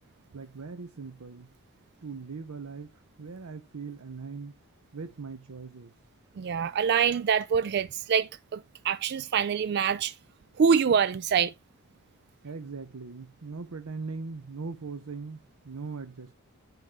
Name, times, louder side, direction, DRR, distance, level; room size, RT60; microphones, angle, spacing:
voice 1, 0.3-1.5 2.0-4.6 4.9-5.9 12.4-16.4, right 4 dB, 75° right, 0.7 m, -40 dB
voice 2, 6.4-10.1 10.6-11.5, right 7 dB, 50° right, 0.3 m, -25 dB
9.2 x 3.5 x 4.7 m
head